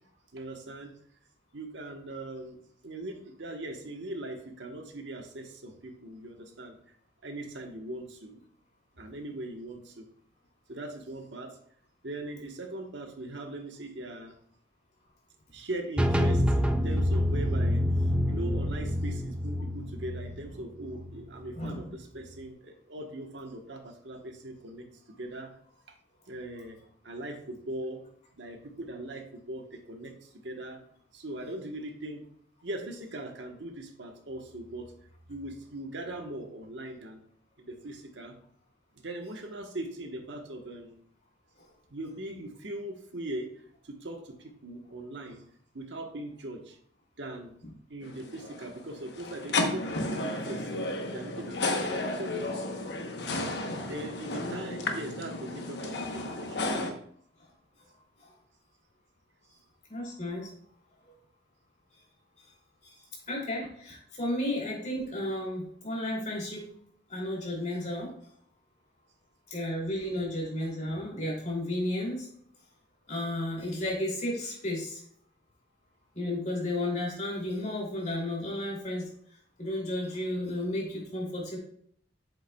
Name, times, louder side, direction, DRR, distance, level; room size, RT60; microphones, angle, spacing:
voice 1, 0.3-0.9 1.5-6.8 7.2-8.4 9.0-10.1 10.7-11.6 12.0-14.3 15.5-17.8 18.3-24.9 25.2-25.5 26.3-26.8 27.0-28.0 28.4-30.8 31.1-32.2 32.6-34.9 35.3-37.2 37.6-38.3 39.0-41.0 41.9-43.5 43.8-45.4 45.7-46.8 47.2-47.5 47.9-52.6 53.2-53.5 53.9-56.7, right 1 dB, 80° right, 4 dB, 1.2 m, -40 dB
sound 1, 16.0-21.7, equal, 5° right, 0.3 m, -27 dB
voice 2, 21.5-21.9 47.6-47.7 58.2-58.3 59.9-60.5 62.8-62.9 63.3-66.7 67.1-68.1 69.5-72.3 73.1-75.0 76.1-79.1 79.6-81.6, left 1 dB, 40° left, -3 dB, 2.8 m, -33 dB
sound 2, 48.0-56.9, left 2 dB, 65° left, 1.0 m, -33 dB
7.9 x 7.4 x 2.3 m, 0.64 s
head